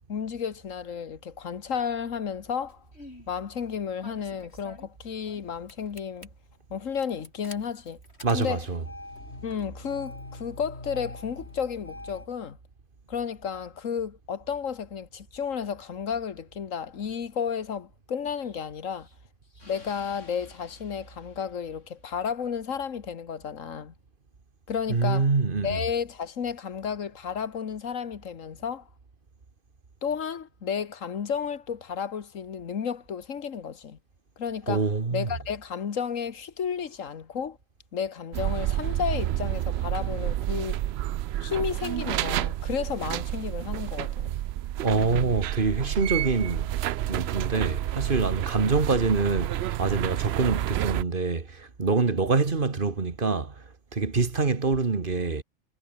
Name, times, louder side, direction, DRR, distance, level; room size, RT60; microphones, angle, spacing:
voice 1, 0.1-2.8 3.3-6.3 6.7-8.0 8.3-8.7 9.4-12.6 13.1-19.1 19.7-23.9 24.7-25.3 25.6-28.9 30.0-34.0 34.4-37.6 37.9-40.8 41.4-44.3, left 7 dB, 85° left, 1.7 m, -32 dB
Engine starting, 2.7-3.3 4.0-5.4 5.7-6.3 6.9-12.3, left 1 dB, 55° left, 6.8 m, -44 dB
voice 2, 8.2-8.8 24.9-25.8 34.7-35.3 44.8-46.7 47.1-53.6 53.9-55.4, right 4 dB, 45° right, 1.9 m, -25 dB
Explosion, 18.4-22.2, left 2 dB, 70° left, 4.6 m, -54 dB
sound 1, 38.3-51.0, right 13 dB, 65° right, 0.7 m, -29 dB
omnidirectional pair, 1.3 m